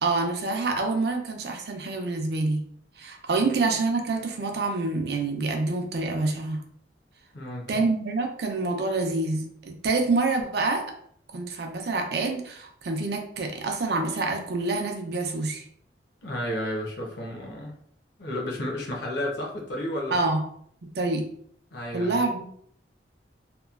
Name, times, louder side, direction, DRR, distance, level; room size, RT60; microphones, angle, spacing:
voice 1, 0.0-2.6 3.0-6.6 7.7-10.8 11.3-15.6 20.1-20.4 21.0-21.2 21.9-22.5, right 3 dB, 65° right, 3 dB, 0.5 m, -27 dB
voice 2, 7.3-7.9 16.2-17.7 18.2-20.2 21.7-22.2, left 1 dB, 75° left, -1 dB, 0.7 m, -32 dB
2.9 x 2.2 x 2.4 m, 0.64 s
head